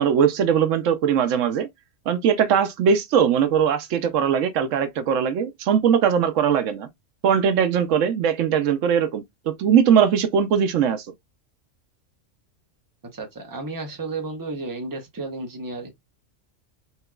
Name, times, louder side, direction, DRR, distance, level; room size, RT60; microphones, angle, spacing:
voice 1, 0.0-1.7 2.1-6.9 7.2-11.1, right 8 dB, 80° right, 1.0 m, -20 dB
voice 2, 13.1-15.9, right 3 dB, 20° right, 0.9 m, -32 dB
4.4 x 2.9 x 2.3 m
omnidirectional pair, 1.3 m